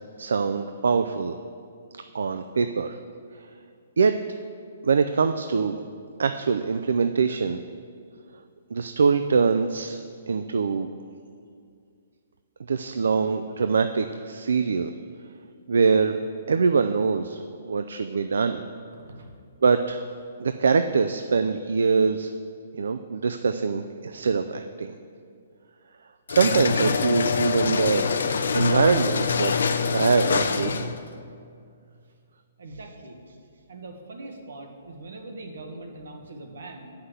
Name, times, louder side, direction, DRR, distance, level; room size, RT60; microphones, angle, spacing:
voice 1, 0.2-1.4 2.1-3.0 3.3-3.5 4.0-4.1 4.8-5.8 6.2-7.6 8.7-10.0 10.3-10.9 12.6-14.9 15.7-18.6 19.6-20.0 20.4-22.3 22.8-25.0 26.3-28.1 28.5-30.9, right 5 dB, 85° right, 8 dB, 0.4 m, -23 dB
sound 1, 26.3-31.0, left 5 dB, 75° left, 0.6 m, -25 dB
voice 2, 32.6-33.2 33.7-36.9, right 2 dB, 70° right, 3 dB, 1.5 m, -41 dB
8.2 x 5.8 x 7.9 m, 2.3 s
hypercardioid pair, 180°, 0 cm